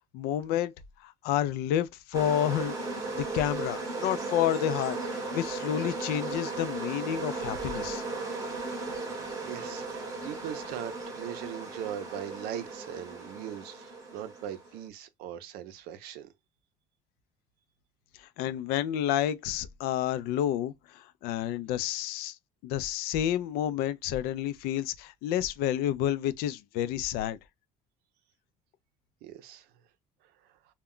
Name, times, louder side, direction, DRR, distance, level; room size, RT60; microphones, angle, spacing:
voice 1, 0.1-0.7 1.0-2.8 3.2-8.0 18.2-22.4 22.6-27.4, left 11 dB, 75° left, 0.4 m, -30 dB
sound 1, 2.1-14.8, right 3 dB, 20° right, 0.8 m, -36 dB
voice 2, 9.4-16.3 29.2-29.7 30.4-30.5, right 10 dB, 70° right, 0.5 m, -40 dB
2.2 x 2.1 x 3.6 m
cardioid pair, 165°, 16 cm